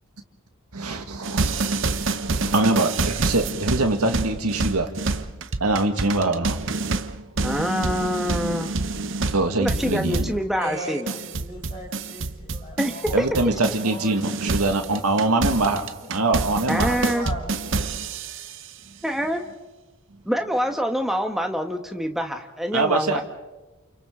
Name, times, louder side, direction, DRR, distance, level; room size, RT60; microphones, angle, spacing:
voice 1, 0.7-4.9 5.6-6.7 7.1-7.5 9.3-10.3 13.1-15.8 16.1-17.0 22.7-23.2, right 2 dB, 90° right, 5 dB, 1.9 m, -24 dB
sound 1, 1.2-14.0 14.2-18.6, right 3 dB, 55° right, 0.9 m, -27 dB
voice 2, 7.4-8.7 9.6-11.0 12.8-13.2 16.7-17.3 19.0-19.5 20.3-23.2, equal, ahead, 4 dB, 1.3 m, -25 dB
voice 3, 10.6-13.3 13.8-14.1 14.4-15.1 15.8-16.3 17.1-18.1 18.5-18.7, left 1 dB, 25° left, -2 dB, 7.7 m, -39 dB
29.5 x 29.0 x 3.8 m, 1.1 s
head